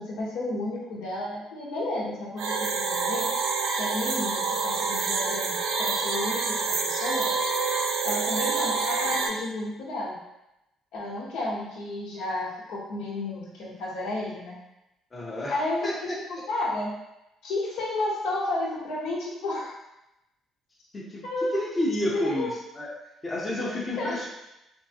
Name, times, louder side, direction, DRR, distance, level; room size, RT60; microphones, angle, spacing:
voice 1, 0.0-3.3 3.7-7.3 8.0-10.2 10.9-14.5 15.5-17.0 17.4-19.7 21.2-21.6 22.1-22.5 24.0-24.2, left 2 dB, 90° left, -5 dB, 0.9 m, -32 dB
sound 1, 2.4-9.3, right 4 dB, 70° right, 0.4 m, -27 dB
voice 2, 15.1-15.5 15.8-15.9 20.9-21.2 21.5-22.5 22.8-22.9 23.2-24.3, left 1 dB, 20° left, -3 dB, 0.6 m, -29 dB
3.5 x 2.3 x 2.7 m, 0.90 s
cardioid pair, 150°, 0 cm